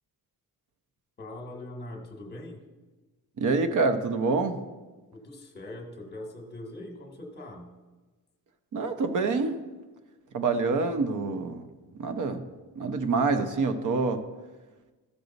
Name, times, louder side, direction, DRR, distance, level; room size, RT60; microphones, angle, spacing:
voice 1, 1.2-2.6 5.1-7.7, left 1 dB, 25° left, 2 dB, 1.3 m, -42 dB
voice 2, 3.4-4.6 8.7-9.6 10.3-11.6 12.0-12.4 12.8-14.2, right 4 dB, 55° right, 8 dB, 0.8 m, -26 dB
14.0 x 6.6 x 4.0 m, 1.3 s
wide cardioid pair, 175°, 37 cm